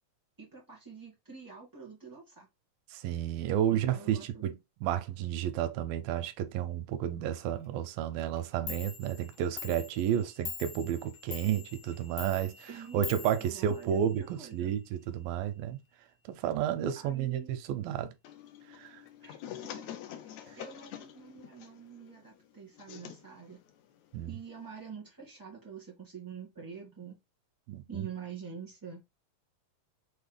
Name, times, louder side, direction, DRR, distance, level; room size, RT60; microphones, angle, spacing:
voice 1, 0.4-2.5 3.7-4.4 11.3-11.4 12.7-13.0 13.4-14.7 16.9-17.6 19.2-19.4 19.7-23.6 24.3-27.2 27.9-29.0, right 6 dB, 35° right, 0.3 m, -46 dB
voice 2, 2.9-4.5 4.8-12.7 12.9-15.8 16.3-18.1 18.7-19.0 24.1-24.4 27.7-28.1, right 10 dB, 85° right, 2.4 m, -31 dB
Clock, 8.4-8.5 8.7-14.3, left 8 dB, 70° left, 1.5 m, -44 dB
sound 1, 18.2-24.9, left 10 dB, 90° left, 1.5 m, -47 dB
6.2 x 2.1 x 3.4 m
omnidirectional pair, 4.0 m